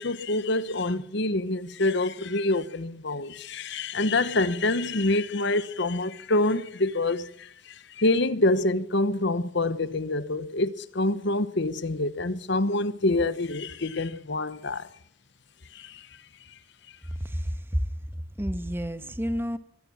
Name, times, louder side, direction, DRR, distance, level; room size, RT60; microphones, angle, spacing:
voice 1, 0.0-14.9 15.7-16.1, left 2 dB, 55° left, 1.0 m, -26 dB
voice 2, 17.2-17.8 18.4-19.6, equal, 10° right, 1.1 m, -29 dB
23.0 x 17.0 x 7.1 m
head